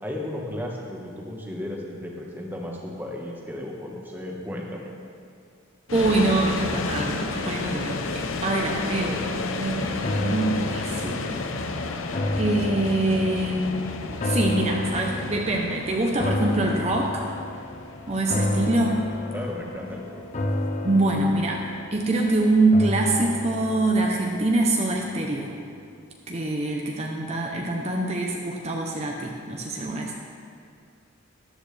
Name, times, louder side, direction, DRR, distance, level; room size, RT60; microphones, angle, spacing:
voice 1, 0.0-4.9 19.3-20.2, left 1 dB, 10° right, -2 dB, 1.3 m, -34 dB
sound 1, 5.9-22.9, left 3 dB, 80° left, 0.7 m, -32 dB
voice 2, 5.9-9.9 10.2-11.4 12.4-13.8 14.2-17.3 18.1-19.0 20.8-21.6 21.9-25.5 26.3-30.2, right 2 dB, 30° right, 0 dB, 0.8 m, -24 dB
sound 2, 10.0-25.3 25.7-25.8, left 1 dB, 35° left, 0.6 m, -31 dB
13.5 x 11.5 x 3.4 m, 2.3 s
head